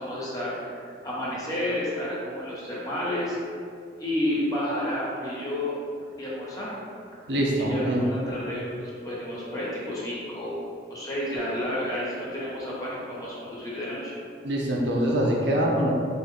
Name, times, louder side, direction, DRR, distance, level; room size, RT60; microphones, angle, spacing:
voice 1, 0.0-3.4 4.0-5.7 6.2-6.7 7.6-10.6 10.9-14.1, left 1 dB, 20° left, -7 dB, 0.9 m, -31 dB
voice 2, 7.3-8.0 14.4-15.9, right 1 dB, 75° right, -2 dB, 0.7 m, -24 dB
3.9 x 2.5 x 3.9 m, 2.3 s
head